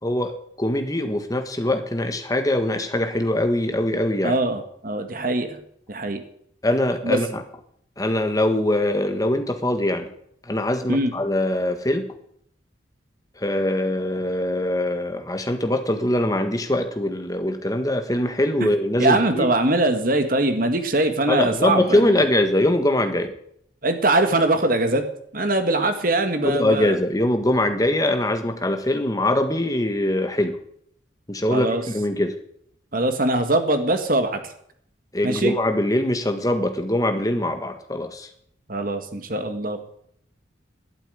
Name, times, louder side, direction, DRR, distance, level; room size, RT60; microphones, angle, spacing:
voice 1, 0.0-4.4 6.6-7.4 8.0-10.1 10.5-12.1 13.4-19.5 21.3-23.3 26.4-30.6 31.3-32.3 35.1-38.3, left 1 dB, 20° left, 7 dB, 1.5 m, -22 dB
voice 2, 4.2-5.6 5.9-6.2 7.0-7.2 10.9-11.1 19.0-22.3 23.8-25.1 25.3-27.0 31.5-31.8 32.9-34.5 35.2-35.5 38.7-40.0, right 2 dB, 50° right, 7 dB, 1.8 m, -22 dB
12.0 x 8.6 x 9.7 m, 0.69 s
head